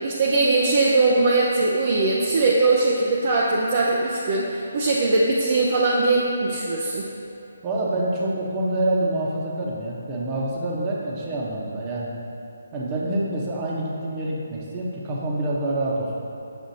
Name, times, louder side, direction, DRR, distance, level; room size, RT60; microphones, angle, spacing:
voice 1, 0.0-7.1, right 3 dB, 45° right, -4 dB, 0.6 m, -21 dB
voice 2, 7.6-12.1 12.7-16.2, right 1 dB, 25° right, -4 dB, 1.0 m, -26 dB
6.2 x 6.0 x 2.8 m, 2.9 s
figure-of-eight pair, 145°, 0 cm